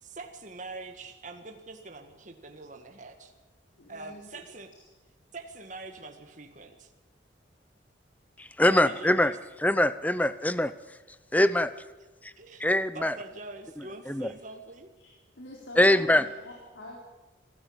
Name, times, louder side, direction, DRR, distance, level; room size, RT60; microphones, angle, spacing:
voice 1, 0.0-3.3 3.9-4.7 5.3-6.9 8.7-9.3 12.4-12.6 12.9-14.9, right 3 dB, 40° right, 5 dB, 1.8 m, -44 dB
voice 2, 3.7-4.2 15.0-17.0, left 1 dB, 80° left, -2 dB, 4.1 m, -46 dB
voice 3, 8.4-11.0 11.3-11.7 12.2-12.3 12.6-13.2 13.8-14.3 15.8-16.3, left 1 dB, 10° left, 14 dB, 0.7 m, -24 dB
24.5 x 13.5 x 8.8 m, 1.2 s
head